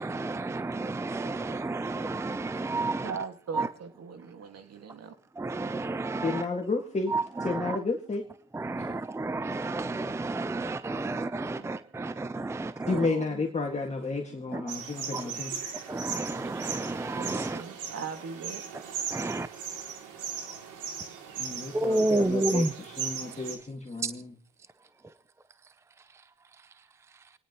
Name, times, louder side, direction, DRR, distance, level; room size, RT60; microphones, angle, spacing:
voice 1, 0.0-3.1 3.5-3.7 5.4-6.5 7.1-7.8 8.5-13.1 14.5-14.6 15.1-15.3 15.9-17.6 19.1-19.6 21.7-22.7 24.0-24.1, right 2 dB, 10° right, 0.6 m, -31 dB
voice 2, 3.0-5.2 11.5-11.7 12.8-13.5 17.0-18.6, right 6 dB, 55° right, 1.9 m, -40 dB
voice 3, 6.2-7.1 7.4-8.2 8.8-8.9 12.9-15.6 21.4-24.3, left 3 dB, 20° left, 1.8 m, -32 dB
sound 1, 14.7-23.6, right 7 dB, 85° right, 2.7 m, -38 dB
28.5 x 10.0 x 3.0 m
cardioid pair, 90°, 30 cm